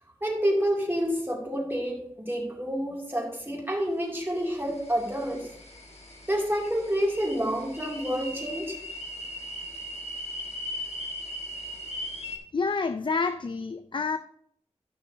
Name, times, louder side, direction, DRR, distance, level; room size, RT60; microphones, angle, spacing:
voice 1, 0.2-5.5 6.3-8.8, equal, 20° right, 2.6 m, -28 dB
sound 1, 4.2-12.4, equal, 65° left, 1.5 m, -39 dB
voice 2, 12.5-14.2, left 4 dB, 45° left, 0.3 m, -28 dB
12.5 x 6.3 x 2.7 m
wide cardioid pair, 55°, 11 cm